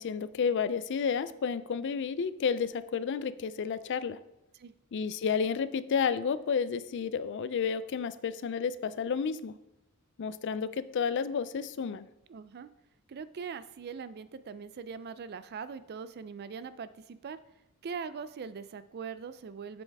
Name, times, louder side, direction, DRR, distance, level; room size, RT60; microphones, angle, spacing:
voice 1, 0.0-4.2 4.9-9.5 10.2-12.1, left 6 dB, 55° left, 15 dB, 0.4 m, -31 dB
voice 2, 12.3-12.7 13.1-17.4 17.8-19.8, right 6 dB, 50° right, 14 dB, 0.4 m, -41 dB
7.8 x 7.0 x 3.5 m, 0.88 s
head